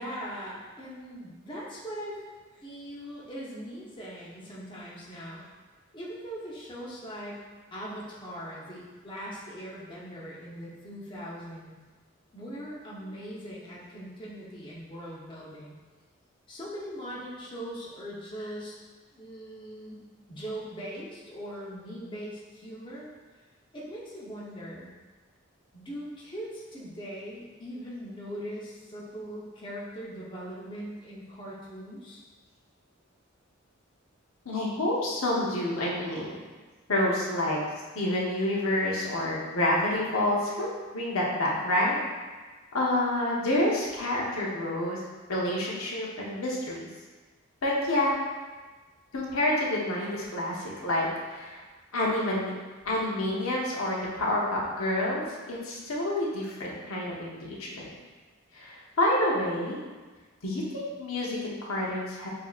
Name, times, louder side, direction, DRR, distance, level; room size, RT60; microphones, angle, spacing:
voice 1, 0.0-2.2 2.5-5.4 5.9-7.4 7.7-11.8 12.3-15.7 16.5-18.7 19.1-23.1 23.7-24.9 25.7-32.2, equal, 25° left, -6 dB, 0.8 m, -40 dB
voice 2, 34.5-36.3 36.9-37.6 37.9-42.0 42.7-45.0 45.3-46.9 47.6-48.1 49.1-51.6 51.9-52.5 52.8-57.9 58.5-59.8 60.4-62.3, left 1 dB, 85° left, -4 dB, 0.9 m, -28 dB
6.6 x 2.8 x 2.4 m, 1.3 s
head